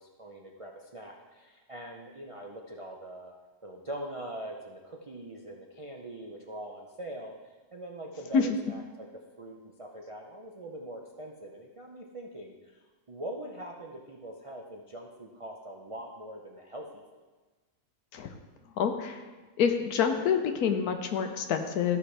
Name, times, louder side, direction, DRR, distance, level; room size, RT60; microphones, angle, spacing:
voice 1, 0.0-3.3 3.6-12.8 13.1-17.0, right 1 dB, 60° right, 0 dB, 0.3 m, -43 dB
voice 2, 18.8-19.2 19.6-22.0, left 7 dB, 75° left, 6 dB, 1.2 m, -27 dB
13.5 x 5.4 x 3.3 m, 1.3 s
omnidirectional pair, 1.6 m